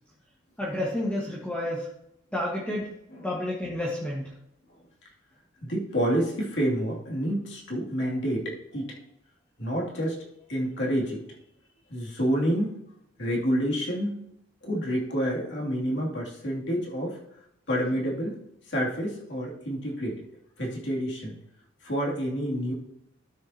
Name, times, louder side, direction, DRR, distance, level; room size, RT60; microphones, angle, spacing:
voice 1, 0.6-1.9 2.3-2.9 3.2-4.4, left 1 dB, 5° left, -6 dB, 1.4 m, -30 dB
voice 2, 5.6-8.9 9.6-11.2 11.9-12.7 13.2-14.2 14.6-17.2 17.7-18.4 18.7-20.2 20.6-21.4 21.8-22.7, equal, 65° left, -3 dB, 2.6 m, -28 dB
12.5 x 6.9 x 2.8 m, 0.78 s
head